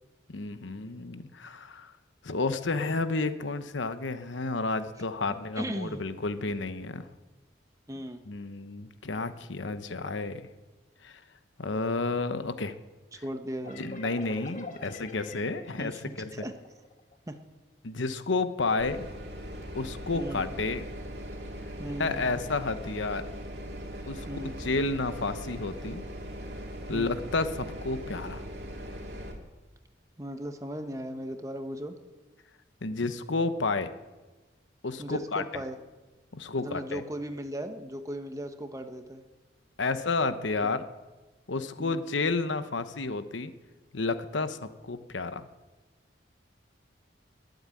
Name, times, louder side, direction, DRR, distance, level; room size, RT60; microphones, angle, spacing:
voice 1, 0.3-1.9 2.2-7.1 8.3-10.4 11.0-11.2 11.6-12.7 13.8-16.4 17.8-19.1 19.7-20.8 22.0-23.2 24.1-24.3 24.6-26.0 26.9-28.4 32.8-33.9 34.8-35.4 36.3-37.0 39.8-40.8 41.5-43.5 43.9-45.5, left 3 dB, 85° left, 11 dB, 1.0 m, -31 dB
voice 2, 5.6-6.0 7.9-8.2 13.1-13.9 15.8-16.5 17.3-17.4 20.1-20.5 21.8-22.3 24.3-24.6 26.9-27.2 30.2-31.9 35.0-35.8 36.6-39.2 41.8-42.0, right 1 dB, 15° right, 7 dB, 1.1 m, -37 dB
sound 1, 13.6-17.2, left 2 dB, 40° left, 1.4 m, -45 dB
sound 2, 18.8-29.4, equal, 60° right, 2.5 m, -40 dB
21.5 x 8.0 x 8.4 m, 1.2 s
head